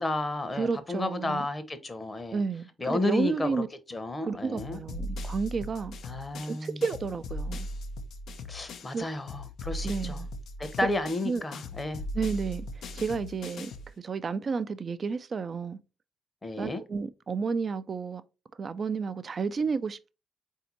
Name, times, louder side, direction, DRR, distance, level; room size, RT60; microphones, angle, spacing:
voice 1, 0.0-2.4 2.8-4.8 6.0-6.8 8.5-10.2 10.6-12.0 16.4-16.8, left 2 dB, 30° left, 0.9 m, -32 dB
voice 2, 0.5-1.4 2.3-3.7 4.2-5.9 6.5-7.7 8.9-9.1 9.8-10.3 11.2-11.4 12.1-12.7 12.9-13.7 14.0-15.8 16.6-18.2 18.6-20.1, right 5 dB, 45° right, 0.4 m, -31 dB
sound 1, 4.6-9.0 9.3-13.9, left 1 dB, 65° left, 0.5 m, -38 dB
4.1 x 2.7 x 3.9 m
hypercardioid pair, 40°, 0 cm